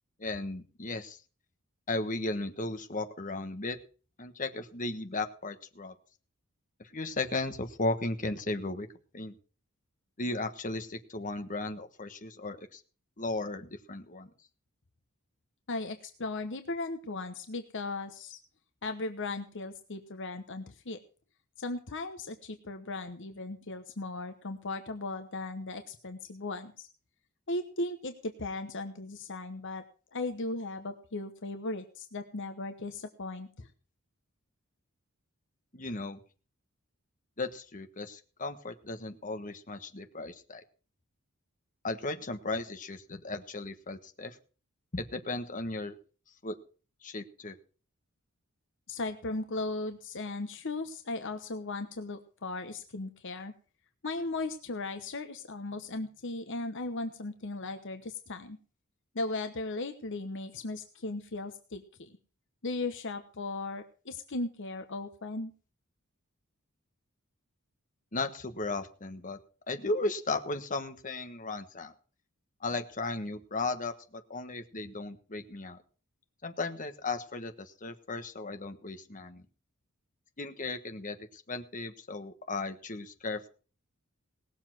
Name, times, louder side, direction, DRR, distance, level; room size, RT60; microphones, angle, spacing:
voice 1, 0.2-1.2 1.9-3.8 4.2-5.9 6.9-8.9 9.1-9.3 10.2-12.8 13.2-14.3 35.7-36.2 37.4-40.6 41.8-44.3 44.9-45.9 46.4-46.5 47.0-47.5 68.1-69.4 69.7-71.9 72.6-75.8 76.4-79.4 80.4-83.5, left 2 dB, 35° left, 7 dB, 1.4 m, -35 dB
voice 2, 15.7-18.4 18.8-21.0 21.6-26.9 27.5-29.8 30.1-33.7 48.9-53.5 54.0-58.6 59.1-62.1 62.6-65.5, left 2 dB, 60° left, 8 dB, 1.1 m, -37 dB
18.5 x 7.2 x 6.0 m, 0.38 s
head